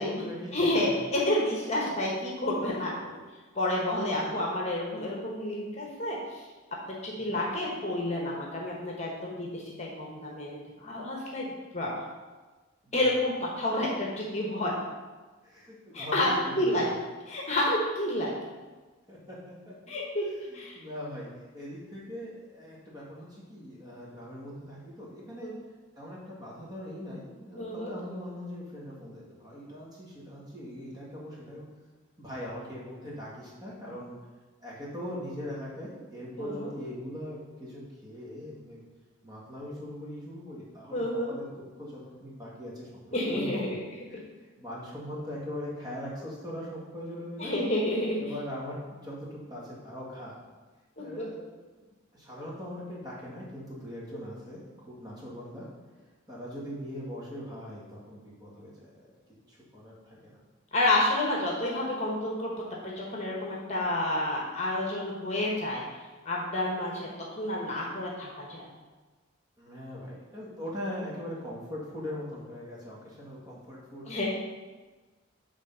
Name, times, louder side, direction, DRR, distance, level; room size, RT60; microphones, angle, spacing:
voice 1, 0.0-1.0 4.2-4.4 7.3-7.4 12.8-13.0 15.4-16.9 19.1-19.7 20.5-25.5 26.0-31.6 32.2-34.2 34.6-38.9 39.2-41.5 41.8-42.9 43.2-43.8 44.1-44.2 44.6-47.5 48.2-50.4 51.0-51.4 52.1-55.7 56.3-59.1 59.5-60.4 69.6-74.1, equal, 20° right, -6 dB, 1.7 m, -40 dB
voice 2, 0.5-3.1 3.5-6.5 7.0-11.5 11.7-12.0 12.9-14.7 15.9-16.9 17.3-18.3 19.9-20.8 25.4-25.5 27.6-27.9 36.4-36.7 40.9-41.3 43.1-43.8 47.4-48.2 51.0-51.2 60.7-62.5 62.8-65.8 66.2-68.6 74.1-74.3, left 1 dB, 35° left, -3 dB, 1.2 m, -29 dB
8.3 x 3.6 x 5.5 m, 1.3 s
head